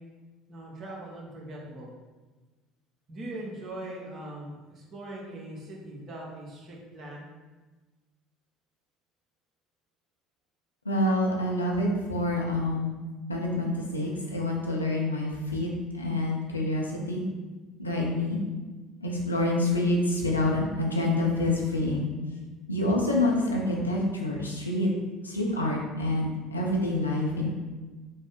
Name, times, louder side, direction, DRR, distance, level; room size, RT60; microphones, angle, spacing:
voice 1, 0.5-1.9 3.1-7.3, right 1 dB, 40° right, -3 dB, 0.9 m, -41 dB
voice 2, 10.8-13.0 13.3-17.2 17.8-18.4 19.0-22.1 22.7-24.9 25.2-27.5, left 1 dB, 90° left, -2 dB, 0.5 m, -27 dB
3.5 x 2.0 x 3.8 m, 1.2 s
figure-of-eight pair, 60°, 0 cm